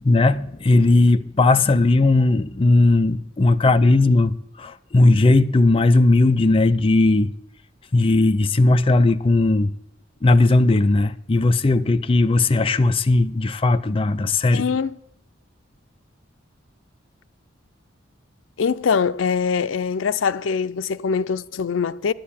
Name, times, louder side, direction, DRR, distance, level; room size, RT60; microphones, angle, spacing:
voice 1, 0.0-7.3 7.9-9.7 10.2-14.8, left 2 dB, 30° left, 0.5 m, -17 dB
voice 2, 14.5-14.9 18.6-22.1, left 6 dB, 80° left, 0.5 m, -23 dB
11.0 x 7.7 x 8.5 m
head